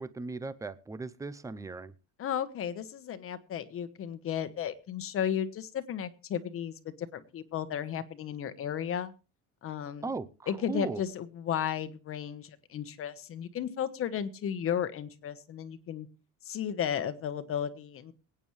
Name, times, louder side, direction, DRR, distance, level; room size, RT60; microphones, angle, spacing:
voice 1, 0.0-1.9 10.0-10.3 10.7-11.0, right 4 dB, 10° right, 15 dB, 0.6 m, -37 dB
voice 2, 2.2-9.1 9.6-10.1 10.5-16.1 16.4-18.1, left 9 dB, 40° left, 11 dB, 1.2 m, -34 dB
24.0 x 9.1 x 3.2 m, 0.33 s
cardioid pair, 155°, 33 cm